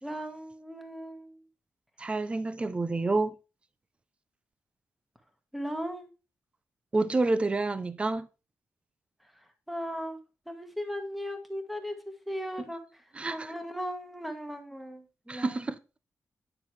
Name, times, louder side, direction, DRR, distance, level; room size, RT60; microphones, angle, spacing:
voice 1, 0.0-1.4 5.5-6.1 9.7-10.2 10.5-13.0 13.3-15.6, equal, ahead, 1.4 m, -37 dB
voice 2, 2.0-3.3 6.9-8.3 13.1-13.5 15.3-15.8, right 3 dB, 20° right, 0.6 m, -28 dB
9.9 x 6.2 x 4.6 m
wide cardioid pair, 175°, 6 cm